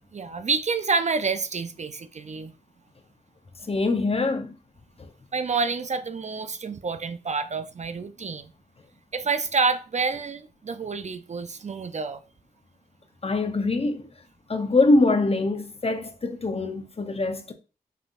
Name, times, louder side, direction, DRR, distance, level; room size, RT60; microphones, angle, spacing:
voice 1, 0.1-2.5 5.3-8.5 9.1-12.2, right 4 dB, 45° right, 0.4 m, -28 dB
voice 2, 3.6-4.6 13.2-14.1 14.5-17.5, left 2 dB, 35° left, 0.8 m, -23 dB
5.6 x 3.4 x 2.5 m
cardioid pair, 45°, 17 cm